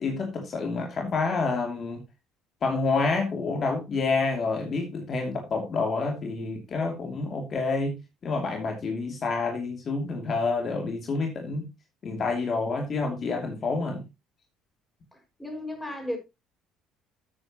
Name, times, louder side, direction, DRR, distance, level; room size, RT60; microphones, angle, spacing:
voice 1, 0.0-2.0 2.6-11.7 12.0-14.0, left 3 dB, 45° left, 2.8 m, -28 dB
voice 2, 15.4-16.2, left 1 dB, 5° left, 5.9 m, -33 dB
12.5 x 8.7 x 3.0 m
hypercardioid pair, 60°, 0 cm